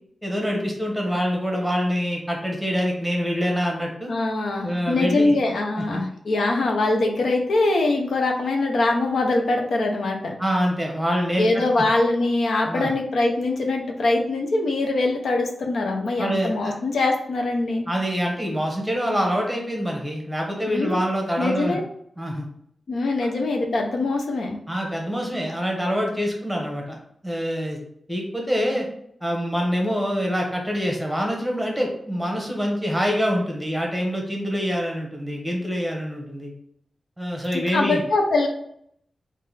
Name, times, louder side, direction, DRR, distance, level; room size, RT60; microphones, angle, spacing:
voice 1, 0.2-4.1 4.6-5.3 5.9-6.0 10.4-11.8 12.7-12.9 16.2-16.7 17.9-21.8 22.2-22.4 24.7-27.0 27.2-27.8 28.1-28.9 29.2-36.5 37.2-38.0, equal, 5° right, 0 dB, 1.0 m, -25 dB
voice 2, 4.1-10.4 11.4-17.8 20.7-21.0 21.4-21.8 22.9-24.6 37.5-38.5, left 2 dB, 75° left, 1 dB, 0.7 m, -23 dB
3.7 x 2.6 x 4.0 m, 0.70 s
wide cardioid pair, 115°, 0 cm